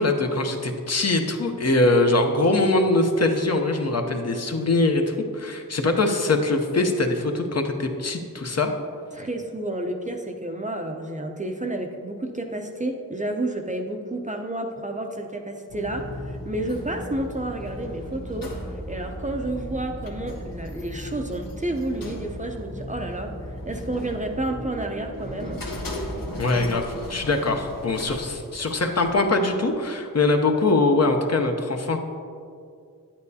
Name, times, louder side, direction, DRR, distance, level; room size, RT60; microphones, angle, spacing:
voice 1, 0.0-8.7 26.4-32.0, left 2 dB, 45° left, 4 dB, 0.8 m, -22 dB
voice 2, 9.1-18.5 18.9-25.6, right 1 dB, 20° right, 3 dB, 0.6 m, -30 dB
sound 1, 15.7-29.1, equal, 75° left, 1.3 m, -36 dB
9.6 x 8.8 x 2.8 m, 2.4 s
wide cardioid pair, 80°, 35 cm